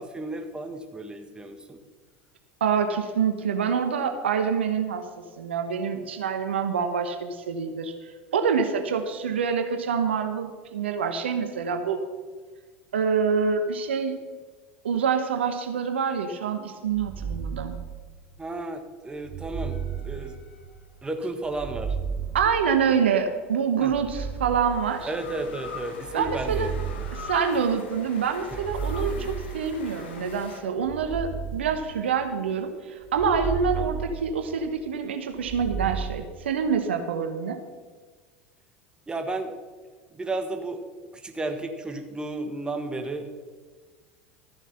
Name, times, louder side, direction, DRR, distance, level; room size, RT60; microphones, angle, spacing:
voice 1, 0.0-1.8 18.4-20.4 21.0-22.0 23.8-23.9 25.1-27.3 28.5-28.6 39.1-39.5 40.1-40.8 41.1-43.3, right 2 dB, 15° right, 6 dB, 1.5 m, -33 dB
voice 2, 2.6-5.0 5.4-7.9 8.3-12.0 12.9-14.2 14.8-17.7 22.3-25.1 26.1-26.7 27.1-37.6, right 6 dB, 80° right, 7 dB, 1.1 m, -26 dB
sound 1, 16.9-18.4 19.2-20.9 21.5-23.3 23.9-25.4 26.1-27.9 28.4-30.1 30.8-32.5 33.1-34.9 35.4-36.2, right 7 dB, 35° right, 1.0 m, -34 dB
sound 2, 19.7-21.2 23.1-30.6, left 5 dB, 75° left, 1.8 m, -42 dB
13.5 x 7.2 x 5.7 m, 1.5 s
hypercardioid pair, 80°, 6 cm